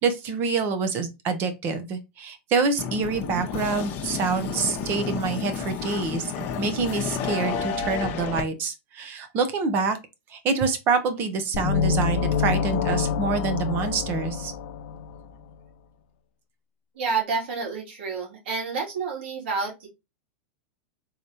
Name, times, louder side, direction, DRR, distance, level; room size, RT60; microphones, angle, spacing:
voice 1, 0.0-10.0 10.3-14.5, right 4 dB, 35° right, 0.9 m, -26 dB
sound 1, 2.8-8.4, left 6 dB, 40° left, 0.9 m, -31 dB
sound 2, 11.5-15.3, left 6 dB, 70° left, 0.6 m, -26 dB
voice 2, 17.0-19.9, right 4 dB, 75° right, 2.5 m, -29 dB
4.0 x 3.3 x 2.8 m
supercardioid pair, 135°, 6 cm